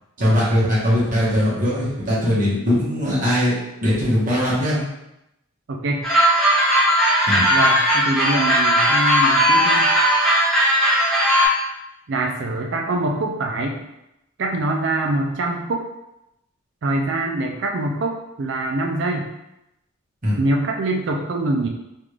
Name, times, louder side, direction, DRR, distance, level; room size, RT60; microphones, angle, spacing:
voice 1, 0.2-3.5 3.8-4.8 7.3-7.5 20.2-20.4, equal, 40° right, -9 dB, 1.2 m, -20 dB
voice 2, 5.7-6.1 7.5-9.9 12.1-13.8 14.4-15.9 16.8-19.3 20.4-21.7, right 2 dB, 60° right, 2 dB, 0.4 m, -24 dB
sound 1, 6.0-11.5, equal, ahead, 0.8 m, -17 dB
3.6 x 2.4 x 3.1 m, 0.87 s
head